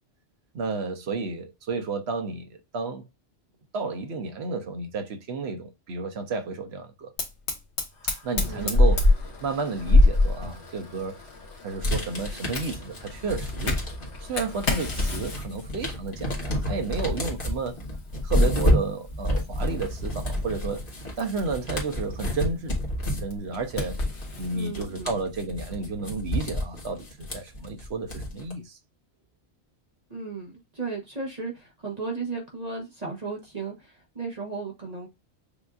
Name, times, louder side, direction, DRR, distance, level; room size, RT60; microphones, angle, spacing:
voice 1, 0.5-3.1 3.7-7.1 8.2-9.1 9.4-11.2 11.6-13.8 14.2-17.8 18.2-20.8 21.2-22.7 23.1-24.0 24.4-28.8, right 4 dB, 70° right, 1.0 m, -31 dB
Fire, 7.2-24.5, left 2 dB, 85° left, 1.5 m, -28 dB
voice 2, 8.5-8.8 24.5-25.1 30.1-35.1, right 4 dB, 40° right, 1.1 m, -35 dB
sound 1, 11.8-14.2 14.6-28.5, left 1 dB, 50° left, 1.6 m, -29 dB
6.7 x 2.6 x 2.4 m
omnidirectional pair, 1.1 m